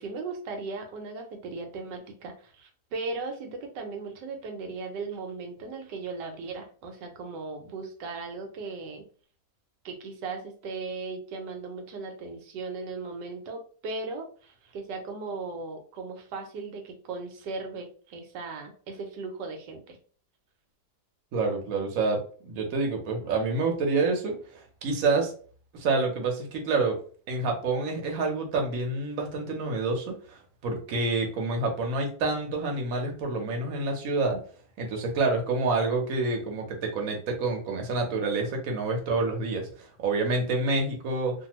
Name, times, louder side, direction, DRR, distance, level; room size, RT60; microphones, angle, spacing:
voice 1, 0.0-3.5 3.7-9.0 9.8-20.0, right 3 dB, 85° right, 4 dB, 1.3 m, -37 dB
voice 2, 21.3-22.2 22.5-25.3 25.7-26.9 27.3-34.4 34.8-41.3, right 3 dB, 60° right, 2 dB, 1.1 m, -28 dB
2.6 x 2.6 x 2.9 m, 0.42 s
omnidirectional pair, 1.8 m